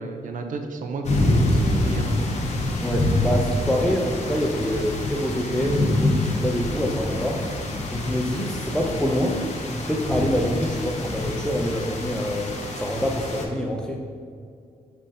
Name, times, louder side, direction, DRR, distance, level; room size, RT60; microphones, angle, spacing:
voice 1, 0.0-2.1, right 3 dB, 65° right, 6 dB, 0.5 m, -31 dB
sound 1, 1.0-13.4, left 1 dB, 50° left, 0.7 m, -26 dB
voice 2, 2.8-7.4 7.9-9.4 9.7-14.0, equal, 5° left, 0 dB, 0.4 m, -26 dB
5.3 x 3.7 x 2.6 m, 2.2 s
cardioid pair, 75°, 15 cm